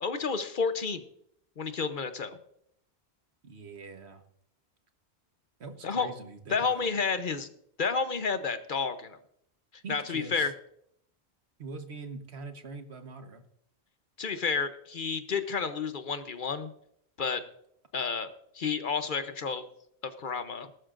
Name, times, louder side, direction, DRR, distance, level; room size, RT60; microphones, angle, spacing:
voice 1, 0.0-1.0 1.6-2.4 5.8-6.1 6.5-7.5 7.8-9.2 9.9-10.5 14.2-16.7 17.2-17.4 17.9-19.6 20.2-20.7, left 5 dB, 55° left, 10 dB, 0.9 m, -30 dB
voice 2, 3.4-4.2 5.6-6.9 9.8-10.5 11.6-13.4, right 3 dB, 75° right, 7 dB, 1.4 m, -43 dB
19.0 x 12.5 x 2.5 m, 0.70 s
omnidirectional pair, 1.1 m